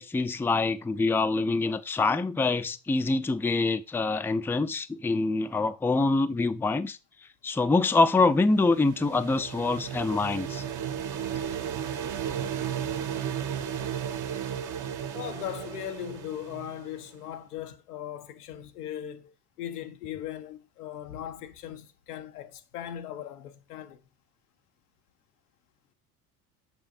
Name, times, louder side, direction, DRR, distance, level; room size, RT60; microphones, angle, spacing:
voice 1, 0.0-7.0 7.4-10.6, left 3 dB, 5° left, 0.4 m, -25 dB
sound 1, 8.3-17.1, right 9 dB, 40° right, 0.9 m, -34 dB
voice 2, 15.1-24.0, left 11 dB, 90° left, 0.8 m, -39 dB
6.2 x 5.9 x 2.6 m
hypercardioid pair, 65°, 45 cm